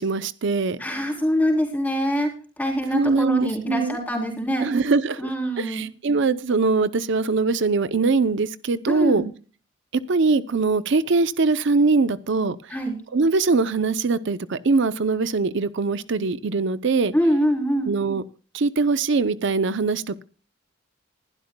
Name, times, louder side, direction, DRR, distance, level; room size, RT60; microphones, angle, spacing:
voice 1, 0.0-0.8 2.9-4.0 4.6-9.2 10.1-12.6 13.1-17.1 17.9-18.2 18.5-20.2, right 4 dB, 65° right, 15 dB, 0.6 m, -22 dB
voice 2, 0.8-2.3 2.6-4.6 5.2-5.8 8.9-9.3 12.7-13.0 17.1-17.9, equal, 10° left, 0 dB, 3.3 m, -24 dB
20.5 x 12.0 x 2.2 m, 0.38 s
head